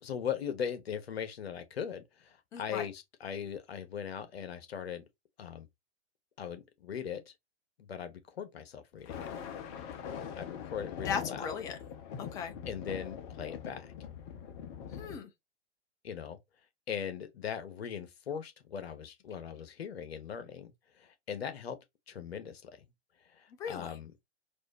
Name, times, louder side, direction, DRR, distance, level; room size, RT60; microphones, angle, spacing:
voice 1, 0.0-5.0 5.4-5.7 6.4-7.2 7.9-9.2 10.4-11.5 12.7-13.9 16.0-16.4 16.9-21.8 22.1-22.9 23.4-24.1, left 8 dB, 60° left, 1.1 m, -39 dB
voice 2, 2.5-2.9 10.9-11.8 12.2-12.5 15.0-15.3 23.6-23.9, left 7 dB, 10° left, 0.4 m, -37 dB
Thunder, 8.9-15.2, left 8 dB, 30° left, 0.9 m, -42 dB
4.3 x 2.7 x 2.9 m
figure-of-eight pair, 110°, 35 cm